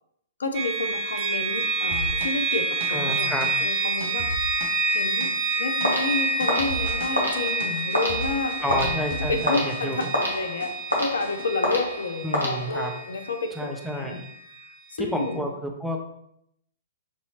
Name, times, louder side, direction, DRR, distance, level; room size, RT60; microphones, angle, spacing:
voice 1, 0.4-4.5 4.9-5.3 5.6-8.9 9.3-14.2 14.9-15.5, left 3 dB, 65° left, 7 dB, 0.5 m, -30 dB
sound 1, 0.5-14.4, right 3 dB, 30° right, 1.2 m, -28 dB
sound 2, 1.9-10.3 10.6-11.4, right 2 dB, 50° right, 0.6 m, -36 dB
voice 2, 2.9-3.5 8.6-10.0 12.2-12.9 13.6-14.2 15.0-16.0, equal, ahead, 1 dB, 0.6 m, -30 dB
sound 3, 5.8-13.1, left 1 dB, 85° left, 1.2 m, -29 dB
6.0 x 2.7 x 2.8 m, 0.75 s
figure-of-eight pair, 115°, 0 cm